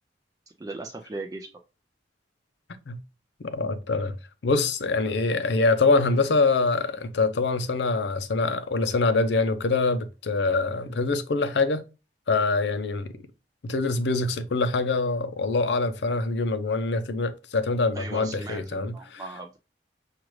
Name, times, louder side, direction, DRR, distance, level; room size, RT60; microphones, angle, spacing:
voice 1, 0.6-1.5 17.9-19.6, right 3 dB, 20° right, 0.4 m, -38 dB
voice 2, 3.4-4.2 4.4-11.8 12.3-13.1 13.6-19.2, left 3 dB, 70° left, 0.5 m, -24 dB
6.1 x 2.4 x 3.1 m
head